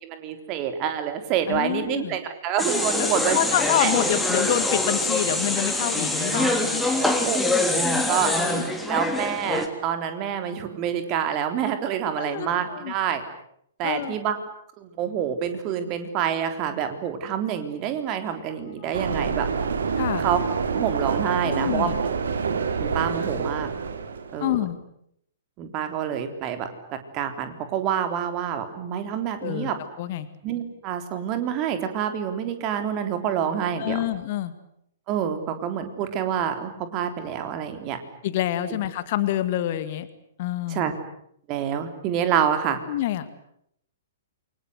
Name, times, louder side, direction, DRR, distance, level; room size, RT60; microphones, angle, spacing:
voice 1, 0.0-3.4 3.8-4.0 6.3-8.4 8.9-13.2 13.8-14.4 14.8-19.5 20.2-20.4 20.7-21.9 22.8-23.7 24.3-24.6 25.6-29.8 30.4-34.0 35.1-38.0 40.7-40.9 41.5-42.8, right 9 dB, 30° right, 8 dB, 3.6 m, -27 dB
voice 2, 1.5-2.2 3.0-6.8 8.3-8.6 12.2-12.9 13.8-14.2 18.8-19.0 20.0-20.2 21.4-22.0 24.4-24.8 29.4-29.7 30.0-30.3 33.8-34.5 38.2-40.1 40.4-40.9 42.9-43.4, left 12 dB, 45° left, 12 dB, 2.0 m, -27 dB
sound 1, 2.6-9.7, left 2 dB, 5° left, 3.2 m, -24 dB
sound 2, 18.9-24.5, right 5 dB, 60° right, 2.8 m, -27 dB
28.5 x 24.5 x 8.0 m, 0.72 s
figure-of-eight pair, 115°, 0 cm